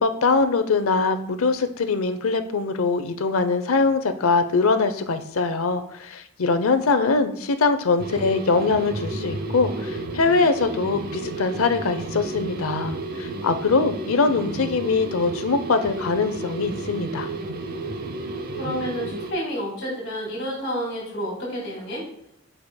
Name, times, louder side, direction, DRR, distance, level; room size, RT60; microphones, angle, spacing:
voice 1, 0.0-17.3, left 4 dB, 80° left, 9 dB, 0.6 m, -22 dB
sound 1, 8.0-19.3, right 2 dB, 45° right, 0.7 m, -32 dB
voice 2, 18.6-22.0, equal, 55° left, -3 dB, 2.3 m, -30 dB
11.5 x 5.0 x 2.2 m, 0.74 s
head